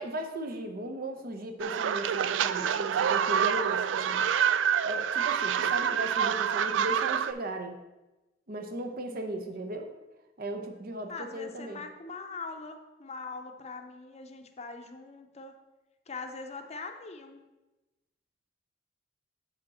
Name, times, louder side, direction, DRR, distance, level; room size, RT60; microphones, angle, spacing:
voice 1, 0.0-4.3 4.8-7.8 8.5-9.9 10.4-11.8, right 1 dB, 55° right, 5 dB, 0.8 m, -37 dB
sound 1, 1.6-7.3, right 8 dB, 75° right, 0.3 m, -27 dB
voice 2, 9.0-9.7 11.1-15.6 16.1-17.4, left 4 dB, 35° left, 6 dB, 0.7 m, -42 dB
7.6 x 5.0 x 4.2 m, 1.1 s
head